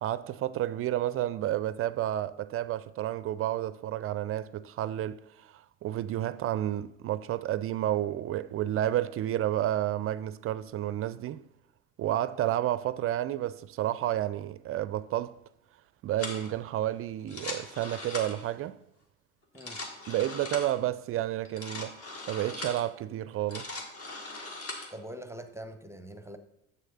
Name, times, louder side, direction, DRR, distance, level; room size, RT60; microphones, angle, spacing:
voice 1, 0.0-11.4 12.0-15.4 16.0-18.8 20.1-22.0 22.3-23.7, right 13 dB, 40° right, 0.4 m, -31 dB
sound 1, 16.2-16.5 17.2-18.5 19.4-20.8 21.5-22.9 23.3-24.9, left 2 dB, 40° left, 2.2 m, -40 dB
voice 2, 19.5-19.8 24.9-26.4, right 1 dB, 5° right, 0.8 m, -43 dB
7.5 x 6.5 x 5.5 m
hypercardioid pair, 65°, 36 cm